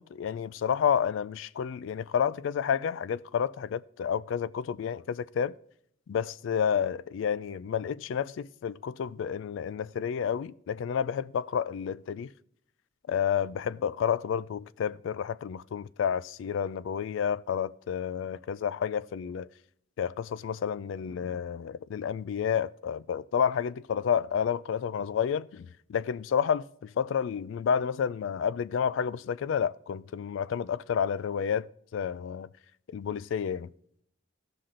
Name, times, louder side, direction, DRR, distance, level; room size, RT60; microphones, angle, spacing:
voice 1, 0.0-5.5 6.1-12.3 13.1-19.5 20.0-32.5 32.9-33.7, left 7 dB, 75° left, 0.3 m, -30 dB
15.5 x 5.9 x 3.8 m
head